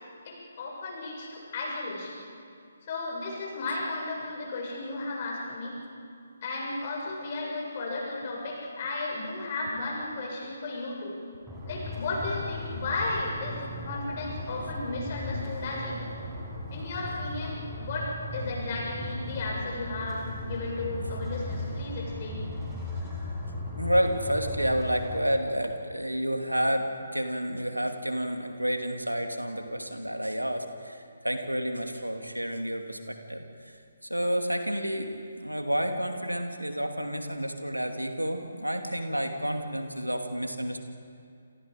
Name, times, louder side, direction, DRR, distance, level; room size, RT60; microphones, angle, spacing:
voice 1, 0.2-2.2 2.8-5.8 6.4-11.2 11.7-16.1 16.7-22.5, left 2 dB, 35° left, -3 dB, 7.3 m, -34 dB
sound 1, 11.5-25.2, left 2 dB, 5° right, 6.0 m, -37 dB
voice 2, 23.8-33.5 34.1-40.8, equal, 90° right, 4 dB, 2.6 m, -30 dB
29.0 x 28.0 x 5.1 m, 2.3 s
figure-of-eight pair, 140°, 0 cm